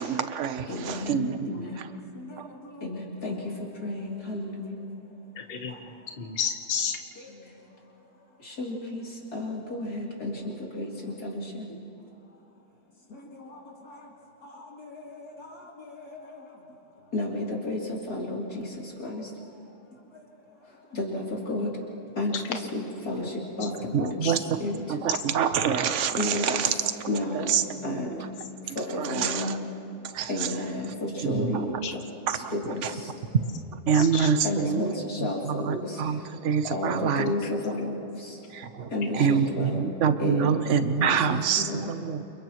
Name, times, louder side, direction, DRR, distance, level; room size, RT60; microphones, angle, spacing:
voice 1, 0.0-1.7 2.4-2.5 23.9-24.4 24.9-26.7 27.3-28.0 28.7-29.5 30.1-30.3 31.2-31.6 33.9-34.9 35.5-37.2 38.5-42.2, right 7 dB, 50° right, 9 dB, 1.2 m, -26 dB
voice 2, 0.7-1.8 2.8-3.4 3.8-4.8 8.6-9.0 9.3-10.9 11.2-11.4 14.5-14.6 14.9-15.5 15.8-16.0 17.1-17.8 18.1-18.4 19.0-19.2 20.9-21.7 22.2-23.3 23.6-24.3 24.6-24.8 26.2-26.6 27.1-27.5 27.8-28.2 28.8-29.5 30.3-31.7 32.5-32.8 34.4-35.9 36.7-38.0 38.9-39.9 40.2-41.3 41.6-41.9, left 2 dB, 65° left, -3 dB, 3.8 m, -31 dB
voice 3, 5.3-5.8 6.2-7.0 24.2-24.3 31.8-31.9 33.9-34.3 37.4-37.5, left 7 dB, 35° left, 4 dB, 1.2 m, -31 dB
29.5 x 29.0 x 3.1 m, 2.8 s
omnidirectional pair, 1.7 m